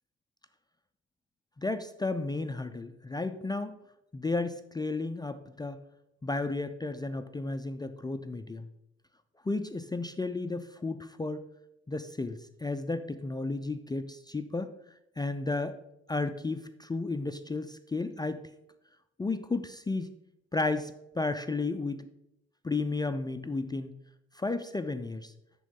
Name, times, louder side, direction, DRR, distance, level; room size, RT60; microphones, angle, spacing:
voice 1, 1.6-3.8 4.1-5.8 6.2-8.7 9.5-11.4 11.9-14.7 15.2-15.7 16.1-18.4 19.2-20.1 20.5-22.1 22.6-23.9 24.4-25.3, left 3 dB, 15° left, 9 dB, 0.3 m, -33 dB
10.0 x 3.7 x 3.7 m, 0.86 s
cardioid pair, 90°, 30 cm